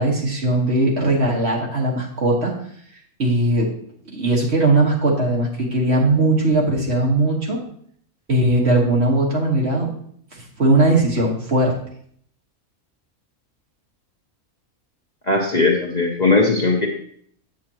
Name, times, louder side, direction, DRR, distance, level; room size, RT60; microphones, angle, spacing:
voice 1, 0.0-2.5 3.2-3.7 4.1-7.6 8.3-9.9 10.3-11.7, right 2 dB, 50° right, -2 dB, 1.8 m, -19 dB
voice 2, 15.3-16.9, left 3 dB, 40° left, -1 dB, 0.8 m, -18 dB
7.5 x 7.4 x 2.9 m, 0.63 s
omnidirectional pair, 1.5 m